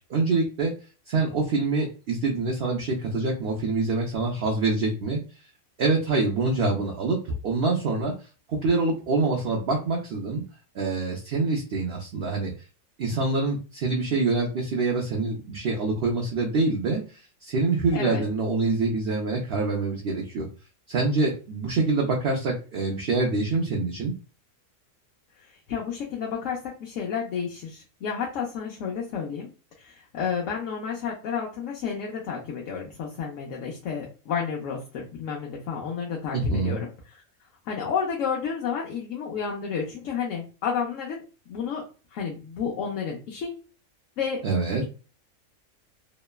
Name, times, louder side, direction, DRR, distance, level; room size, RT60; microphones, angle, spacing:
voice 1, 0.1-0.7 1.1-5.2 5.8-7.2 7.4-8.1 8.5-10.4 10.7-12.5 13.0-20.5 20.9-24.1 36.3-36.8 44.4-44.8, right 3 dB, 65° right, 0 dB, 0.6 m, -25 dB
voice 2, 17.9-18.2 25.4-29.5 29.8-36.9 37.6-41.2 41.5-41.8 42.1-43.5 44.2-44.4, left 6 dB, 70° left, -1 dB, 0.9 m, -31 dB
3.0 x 2.1 x 2.2 m, 0.35 s
omnidirectional pair, 1.5 m